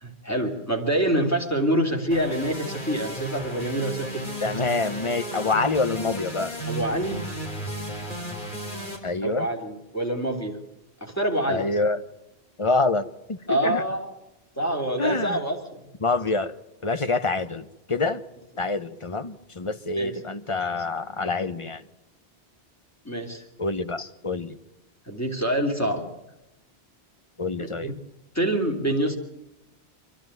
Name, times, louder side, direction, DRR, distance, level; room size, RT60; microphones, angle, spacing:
voice 1, 0.0-4.2 6.7-7.3 9.2-10.6 11.0-11.8 13.5-14.1 14.6-15.9 19.9-20.2 23.0-23.4 25.1-26.1 27.6-27.9 28.3-29.2, right 1 dB, 15° left, 1 dB, 3.1 m, -26 dB
sound 1, 2.1-9.0, equal, 50° left, 4.6 m, -34 dB
voice 2, 4.4-6.5 9.0-9.5 11.5-12.0 12.6-13.8 15.0-15.4 16.0-16.5 16.8-18.2 18.6-21.8 23.6-24.6 27.4-27.9, left 3 dB, 30° left, 11 dB, 0.9 m, -26 dB
26.5 x 11.5 x 9.2 m, 0.93 s
omnidirectional pair, 1.1 m